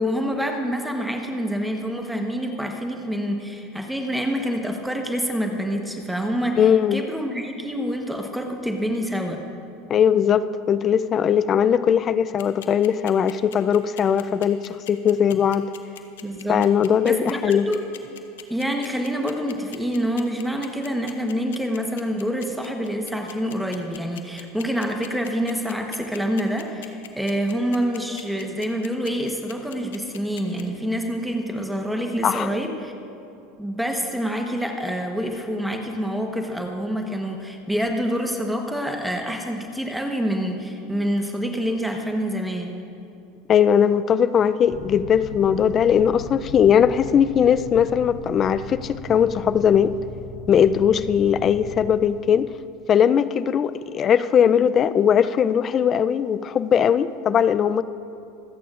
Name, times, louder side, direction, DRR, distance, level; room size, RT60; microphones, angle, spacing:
voice 1, 0.0-6.6 6.9-9.4 16.2-16.6 17.0-17.9 18.5-32.9 33.6-42.8, equal, 5° right, 3 dB, 1.1 m, -27 dB
voice 2, 6.6-7.0 9.9-14.6 14.9-15.7 16.5-17.7 32.2-32.5 43.5-49.9 50.5-52.5 52.9-57.8, left 8 dB, 35° left, 14 dB, 0.4 m, -19 dB
sound 1, 12.4-30.6, left 12 dB, 85° left, 0.8 m, -41 dB
sound 2, 44.7-51.9, left 2 dB, 40° right, 1.7 m, -38 dB
25.0 x 8.5 x 2.5 m, 2.6 s
hypercardioid pair, 100°, 0 cm